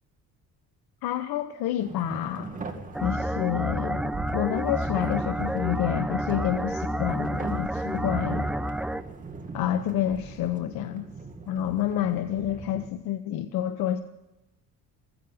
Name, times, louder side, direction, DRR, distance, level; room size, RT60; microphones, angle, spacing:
voice 1, 1.0-2.5 3.0-8.5 9.5-11.0 11.5-14.0, left 11 dB, 85° left, 9 dB, 0.9 m, -29 dB
sound 1, 1.8-12.9, right 4 dB, 20° right, 2.1 m, -40 dB
sound 2, 2.9-9.0, right 1 dB, ahead, 0.5 m, -30 dB
16.0 x 16.0 x 5.6 m, 0.95 s
cardioid pair, 145°, 36 cm